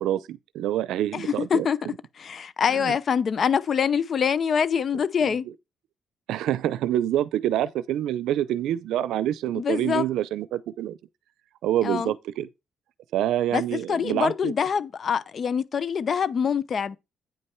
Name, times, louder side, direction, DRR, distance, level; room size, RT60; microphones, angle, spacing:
voice 1, 0.0-2.0 2.7-3.0 4.9-5.5 6.3-11.0 11.6-12.5 13.1-14.5, right 12 dB, 85° right, 0.6 m, -27 dB
voice 2, 1.1-1.8 2.2-5.5 9.5-10.0 11.8-12.1 13.5-17.0, left 7 dB, 50° left, 0.8 m, -25 dB
9.1 x 5.4 x 4.5 m
cardioid pair, 90°, 0 cm